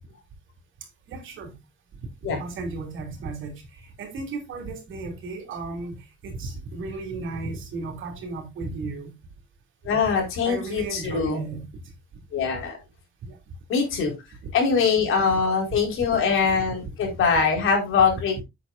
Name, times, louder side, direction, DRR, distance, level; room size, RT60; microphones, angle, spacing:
voice 1, 1.1-1.6 2.2-9.2 10.4-11.7 13.2-13.4 14.4-14.5 15.3-15.4 16.5-17.2 18.4-18.5, right 3 dB, 70° right, 3.3 m, -35 dB
voice 2, 9.8-11.4 12.3-12.8 13.7-14.1 14.5-18.4, left 5 dB, 75° left, 4.7 m, -23 dB
10.0 x 8.1 x 2.6 m
cardioid pair, 160°, 21 cm